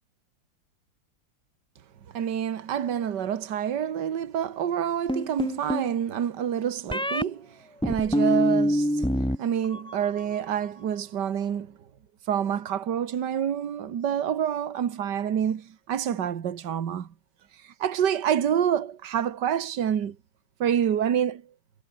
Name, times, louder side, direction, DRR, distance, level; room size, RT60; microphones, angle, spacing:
voice 1, 2.1-7.5 7.8-9.0 9.4-11.7 12.3-17.1 17.8-20.2 20.6-21.4, right 9 dB, 65° right, 2.0 m, -27 dB
sound 1, 5.1-5.9 6.9-7.2 7.8-9.4 9.6-10.2, equal, ahead, 3.9 m, -25 dB
omnidirectional pair, 2.0 m